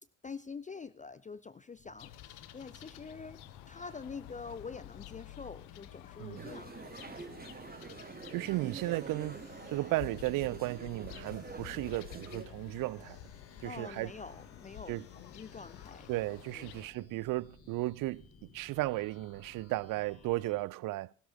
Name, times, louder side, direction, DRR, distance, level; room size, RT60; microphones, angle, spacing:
voice 1, 0.2-3.4 3.7-7.3 13.6-16.1 16.5-16.7, left 5 dB, 20° left, 0.5 m, -46 dB
sound 1, 1.8-20.6, left 3 dB, 35° left, 2.3 m, -58 dB
sound 2, 2.0-16.9, left 15 dB, 65° left, 0.8 m, -51 dB
sound 3, 6.4-12.5, right 4 dB, 20° right, 1.5 m, -46 dB
voice 2, 8.3-13.2 13.6-14.1 14.9-15.0 16.1-21.1, right 19 dB, 50° right, 0.5 m, -35 dB
16.0 x 12.0 x 3.6 m
figure-of-eight pair, 45°, 43 cm